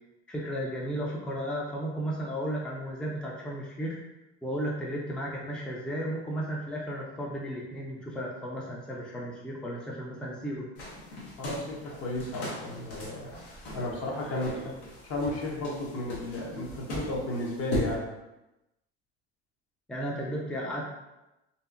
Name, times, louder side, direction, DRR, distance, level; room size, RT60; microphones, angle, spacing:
voice 1, 0.3-4.0 4.4-10.7 14.2-14.7 19.9-20.8, equal, 5° left, -3 dB, 0.4 m, -34 dB
sound 1, 10.8-18.0, left 1 dB, 80° left, 0.9 m, -38 dB
voice 2, 11.4-13.4 13.7-14.7 15.0-18.1, left 1 dB, 50° left, -2 dB, 0.8 m, -33 dB
2.7 x 2.4 x 2.4 m, 0.97 s
supercardioid pair, 90°, 30 cm